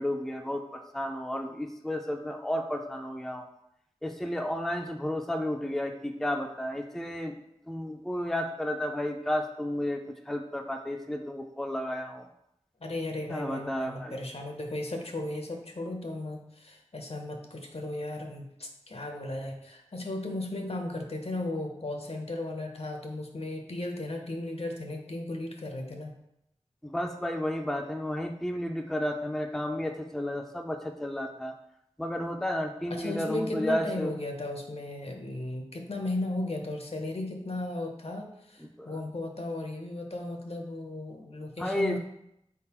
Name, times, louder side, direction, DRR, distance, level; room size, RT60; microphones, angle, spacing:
voice 1, 0.0-3.5 4.0-7.4 7.7-12.3 13.3-14.2 26.8-31.5 32.0-34.1 38.6-39.0 41.6-42.0, left 1 dB, 5° left, 4 dB, 0.4 m, -32 dB
voice 2, 12.8-26.1 32.9-42.0, left 2 dB, 60° left, 3 dB, 0.7 m, -35 dB
4.0 x 3.6 x 2.9 m, 0.80 s
wide cardioid pair, 40°, 11 cm